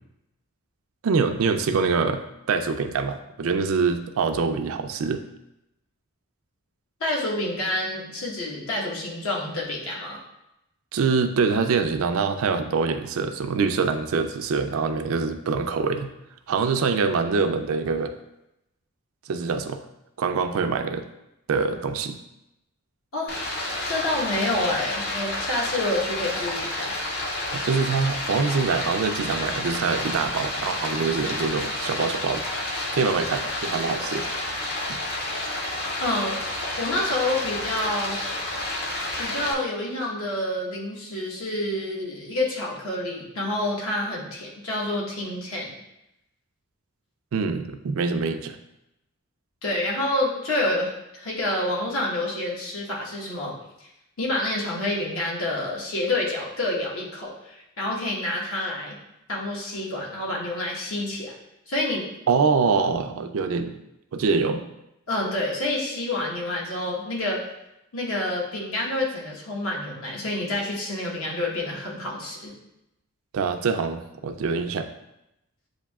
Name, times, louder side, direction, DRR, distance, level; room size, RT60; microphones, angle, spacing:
voice 1, 1.0-2.2 2.5-5.2 10.9-16.1 16.5-18.1 19.3-19.8 20.2-21.0 21.5-22.2 27.5-32.5 32.9-34.3 34.9-35.0 47.3-48.6 62.3-63.8 64.1-64.7 73.3-74.9, right 5 dB, 65° right, 8 dB, 0.4 m, -24 dB
voice 2, 7.0-10.2 23.1-23.4 23.9-27.0 36.0-36.4 36.8-38.2 39.2-45.8 49.6-53.6 54.2-59.0 59.3-61.3 61.7-62.1 65.1-67.4 67.9-72.5, left 1 dB, 70° left, -3 dB, 1.2 m, -28 dB
Stream, 23.3-39.5, left 1 dB, 45° left, 0.6 m, -30 dB
7.9 x 2.7 x 2.3 m, 0.87 s
head